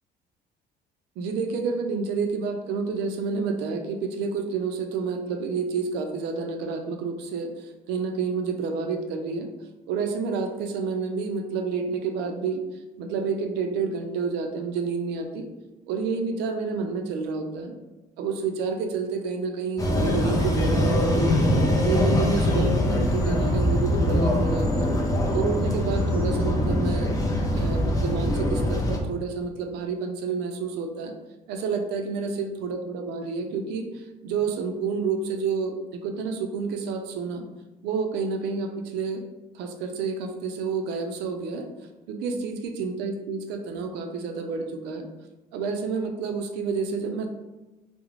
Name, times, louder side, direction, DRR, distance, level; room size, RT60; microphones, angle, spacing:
voice 1, 1.2-9.5 9.9-12.6 13.0-15.5 15.9-17.7 18.2-21.4 21.8-24.9 25.3-27.1 27.5-31.1 31.5-37.4 37.8-39.2 39.5-41.7 42.1-45.1 45.5-47.3, right 5 dB, 90° right, 5 dB, 0.4 m, -29 dB
sound 1, 19.8-29.0, left 1 dB, 20° left, 0.5 m, -23 dB
2.4 x 2.0 x 3.0 m, 1.1 s
cardioid pair, 110°, 17 cm